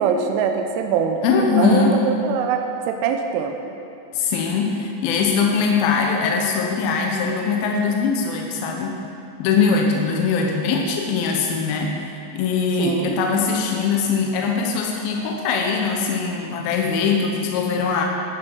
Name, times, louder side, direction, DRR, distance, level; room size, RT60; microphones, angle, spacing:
voice 1, 0.0-1.2 1.5-3.7 12.8-13.3, right 6 dB, 80° right, 5 dB, 2.7 m, -23 dB
voice 2, 1.2-2.0 4.1-9.0 9.4-12.0 12.3-18.0, left 5 dB, 75° left, 1 dB, 2.3 m, -21 dB
13.5 x 11.0 x 4.6 m, 2.7 s
omnidirectional pair, 5.0 m